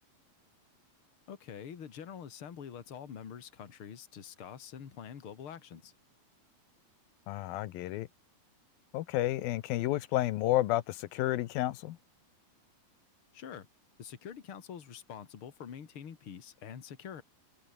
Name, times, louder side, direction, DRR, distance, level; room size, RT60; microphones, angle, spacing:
voice 1, 1.3-5.9 13.3-13.7 14.0-17.2, left 8 dB, 40° left, 2.8 m, -46 dB
voice 2, 7.3-8.1 8.9-12.0, left 15 dB, 85° left, 2.8 m, -31 dB
omnidirectional pair, 4.1 m